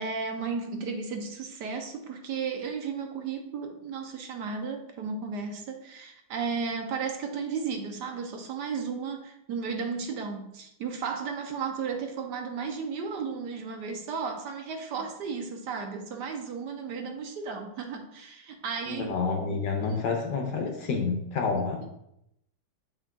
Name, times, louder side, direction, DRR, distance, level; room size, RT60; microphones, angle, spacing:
voice 1, 0.0-19.2 19.9-20.0 20.6-20.8 21.5-21.6, right 5 dB, 65° right, 4 dB, 1.1 m, -34 dB
voice 2, 18.9-21.9, left 4 dB, 65° left, 3 dB, 1.2 m, -29 dB
7.3 x 6.0 x 2.3 m, 0.78 s
omnidirectional pair, 2.3 m